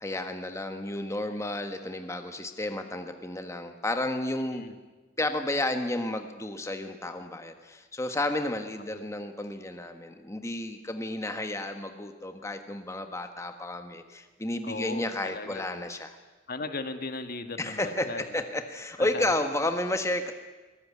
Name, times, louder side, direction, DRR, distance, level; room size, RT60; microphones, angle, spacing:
voice 1, 0.0-4.6 5.2-16.1 17.6-20.3, left 1 dB, 15° left, 6 dB, 1.4 m, -32 dB
voice 2, 14.6-15.7 16.5-18.4 19.0-19.3, left 3 dB, 50° left, 8 dB, 1.6 m, -37 dB
22.5 x 20.0 x 9.6 m, 1.2 s
head